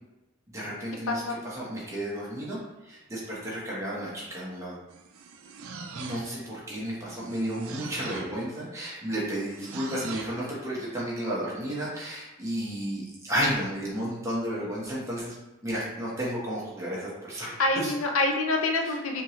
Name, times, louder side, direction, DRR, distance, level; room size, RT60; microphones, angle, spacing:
voice 1, 0.5-1.2 1.5-2.6 2.8-4.8 5.9-15.3 15.6-17.9 18.8-18.9, equal, 15° right, -7 dB, 1.1 m, -32 dB
voice 2, 1.1-1.4 6.1-6.4 17.2-17.3 17.6-19.2, left 2 dB, 90° left, 3 dB, 0.6 m, -27 dB
sound 1, 4.9-6.5 7.2-8.4 9.4-10.4, right 4 dB, 90° right, 0.4 m, -42 dB
4.4 x 2.9 x 3.1 m, 1.0 s
head